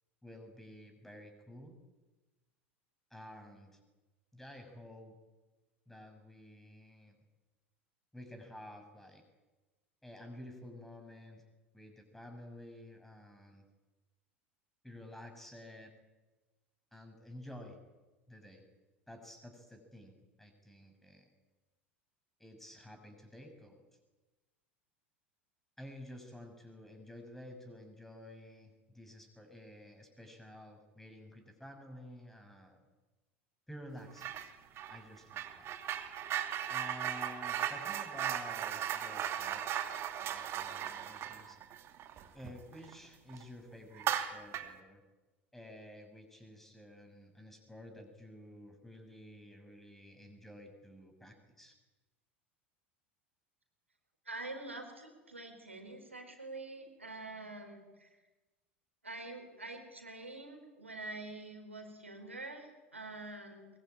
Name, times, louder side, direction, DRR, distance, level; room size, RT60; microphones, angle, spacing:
voice 1, 0.2-1.8 3.1-3.8 4.3-5.2 5.9-7.2 8.1-9.2 10.0-11.4 11.7-13.6 14.8-15.9 16.9-17.8 18.3-18.6 19.1-21.3 22.4-23.8 25.8-32.8 33.7-34.3 34.9-35.7 36.7-41.6 42.3-45.0 45.5-51.7, left 1 dB, 5° left, 5 dB, 6.5 m, -51 dB
sound 1, 34.2-34.5 34.8-42.9 43.3-43.4 43.9-44.8, right 10 dB, 40° right, 2.6 m, -37 dB
voice 2, 54.2-58.1 59.0-63.7, right 2 dB, 85° right, 4 dB, 4.5 m, -46 dB
22.5 x 22.5 x 9.0 m, 1.2 s
figure-of-eight pair, 75°, 7 cm